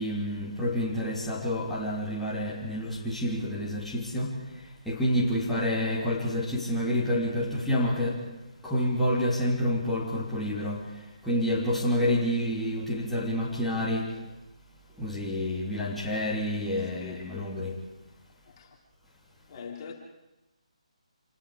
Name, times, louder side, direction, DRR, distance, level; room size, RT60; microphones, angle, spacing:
voice 1, 0.0-4.4 4.8-8.2 8.6-10.9 11.2-14.1 15.0-17.8, left 1 dB, 5° left, 3.1 m, -28 dB
voice 2, 12.1-13.0 13.9-14.2 16.9-17.7 18.5-18.8 19.5-19.9, left 5 dB, 35° left, 3.3 m, -44 dB
27.0 x 20.0 x 5.0 m
figure-of-eight pair, 150°, 4 cm